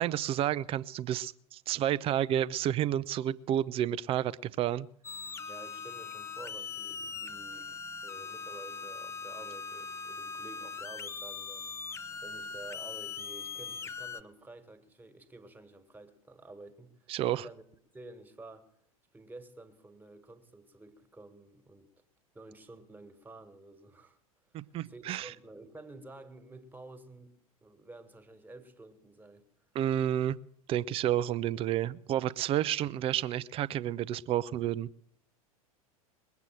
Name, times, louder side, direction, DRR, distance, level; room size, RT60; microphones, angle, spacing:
voice 1, 0.0-4.9 17.1-17.5 24.5-25.3 29.7-30.4 30.7-34.9, right 11 dB, 30° right, 0.6 m, -30 dB
sound 1, 5.0-14.2, left 5 dB, 15° left, 0.7 m, -41 dB
voice 2, 5.5-11.7 12.2-17.6 17.9-18.7 19.1-21.9 22.3-24.2 24.5-24.6 24.9-27.3 27.6-29.5, right 2 dB, 10° right, 1.8 m, -51 dB
21.0 x 8.2 x 7.6 m
figure-of-eight pair, 85°, 19 cm